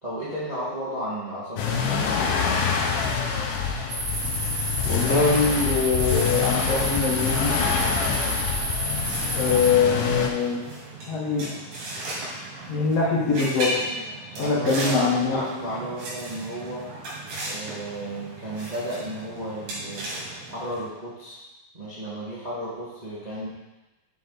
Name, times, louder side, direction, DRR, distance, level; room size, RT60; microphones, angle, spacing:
voice 1, 0.0-2.4 14.3-16.9 17.4-20.1 20.5-21.4 21.7-23.5, right 1 dB, 40° right, -9 dB, 0.6 m, -33 dB
sound 1, 1.6-10.3, left 6 dB, 80° left, 2.3 m, -26 dB
sound 2, 3.9-9.7, right 1 dB, 60° right, 2.4 m, -30 dB
voice 2, 4.8-7.6 9.3-10.7 11.1-11.6 12.7-13.9 14.4-15.4, left 4 dB, 60° left, -3 dB, 1.9 m, -23 dB
sound 3, 9.1-20.8, right 1 dB, 75° right, 3.7 m, -36 dB
7.8 x 4.7 x 3.9 m, 1.1 s
omnidirectional pair, 3.7 m